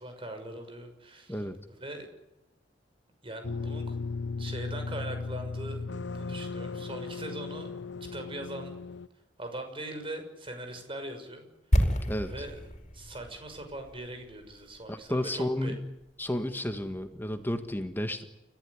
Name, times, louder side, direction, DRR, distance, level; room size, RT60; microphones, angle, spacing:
voice 1, 0.0-2.1 3.2-3.9 4.4-7.7 8.1-8.8 9.4-11.5 12.3-15.8, right 1 dB, 30° right, 6 dB, 6.3 m, -41 dB
sound 1, 3.4-9.1, left 4 dB, 75° left, 0.8 m, -36 dB
sound 2, 11.7-15.7 15.9-16.0, equal, 40° left, 5.0 m, -30 dB
voice 2, 14.9-15.8 16.2-18.2, left 1 dB, 10° left, 7 dB, 1.7 m, -32 dB
30.0 x 15.0 x 9.9 m, 0.93 s
head